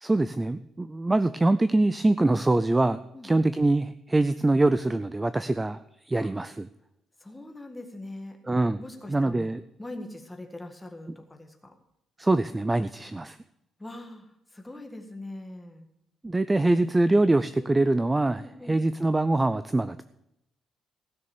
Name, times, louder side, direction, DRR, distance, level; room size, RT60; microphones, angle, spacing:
voice 1, 0.0-6.7 8.5-8.8 9.1-9.6 12.2-13.4 16.2-20.0, right 2 dB, 10° right, 13 dB, 0.4 m, -24 dB
voice 2, 3.1-3.5 6.2-6.3 7.2-8.4 8.8-11.7 13.8-15.9 18.4-18.8, left 1 dB, 10° left, 4 dB, 1.6 m, -42 dB
16.0 x 6.7 x 7.1 m, 0.83 s
cardioid pair, 175°, 0 cm